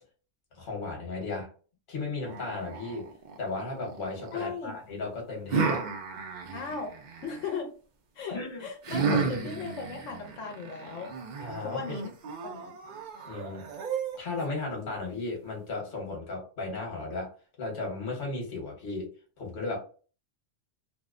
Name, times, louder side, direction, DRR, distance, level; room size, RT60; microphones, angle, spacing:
voice 1, 0.5-1.5 1.9-3.1 3.4-5.8 8.3-8.6 9.1-9.4 11.4-12.0 13.3-13.7 14.2-17.3 17.6-19.1 19.4-19.8, left 3 dB, 45° left, -1 dB, 1.1 m, -35 dB
sound 1, 2.3-4.5 5.5-7.6 8.8-14.4, right 5 dB, 60° right, 0.5 m, -34 dB
voice 2, 4.3-4.8 6.5-6.9 7.2-7.7 8.1-11.1 11.6-12.1 12.4-12.8, left 5 dB, 80° left, 2 dB, 0.9 m, -37 dB
2.6 x 2.0 x 2.4 m, 0.39 s
omnidirectional pair, 1.3 m